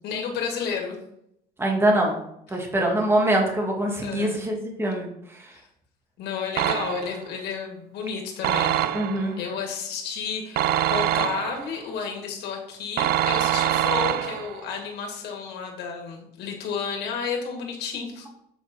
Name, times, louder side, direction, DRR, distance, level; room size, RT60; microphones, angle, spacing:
voice 1, 0.0-1.0 2.5-2.6 4.0-4.4 5.5-5.6 6.2-8.8 9.4-18.3, left 6 dB, 80° left, 2 dB, 1.9 m, -32 dB
voice 2, 1.6-2.2 2.5-5.1 8.9-9.3, right 1 dB, 15° right, 0 dB, 1.8 m, -23 dB
sound 1, 6.6-7.2 8.4-9.3 10.6-11.8 13.0-14.6, right 12 dB, 65° right, 0.5 m, -24 dB
7.4 x 4.2 x 4.1 m, 0.76 s
cardioid pair, 110°, 17 cm